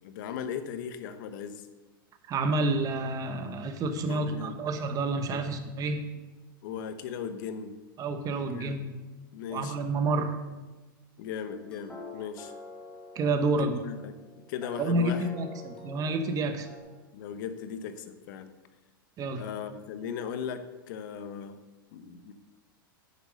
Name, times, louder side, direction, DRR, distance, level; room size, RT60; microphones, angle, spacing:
voice 1, 0.0-1.7 4.1-4.6 5.3-5.5 6.6-7.8 8.4-8.9 9.3-9.8 11.2-12.5 13.6-14.2 14.5-15.3 17.1-18.5 19.3-21.6 21.9-22.3, left 7 dB, 60° left, 10 dB, 0.9 m, -38 dB
voice 2, 2.3-6.0 8.0-9.0 9.5-10.3 13.1-13.8 14.8-16.7 19.2-19.4, right 2 dB, 30° right, 8 dB, 1.1 m, -29 dB
sound 1, 11.5-16.8, left 3 dB, 5° left, 1.8 m, -47 dB
9.8 x 6.9 x 5.2 m, 1.2 s
hypercardioid pair, 120°, 12 cm